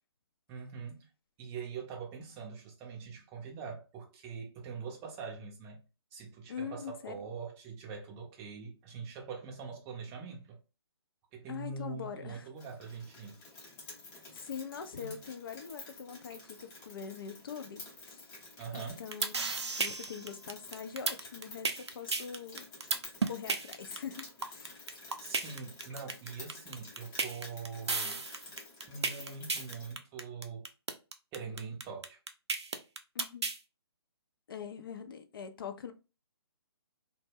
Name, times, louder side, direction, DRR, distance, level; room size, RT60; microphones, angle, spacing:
voice 1, 0.5-1.1 1.4-5.8 6.1-10.6 11.3-13.4 15.0-15.2 18.6-19.0 25.2-28.2 28.9-30.7 31.3-32.2, right 5 dB, 20° right, 0.5 m, -43 dB
voice 2, 6.5-7.2 11.5-12.5 14.3-18.3 18.7-19.3 19.8-22.7 23.2-24.9 33.1-33.5 34.5-35.9, left 7 dB, 55° left, 0.5 m, -43 dB
Rain, 12.6-29.9, left 3 dB, 20° left, 0.7 m, -51 dB
sound 1, 18.9-33.6, right 4 dB, 85° right, 0.5 m, -33 dB
2.1 x 2.0 x 3.3 m
figure-of-eight pair, 140°, 14 cm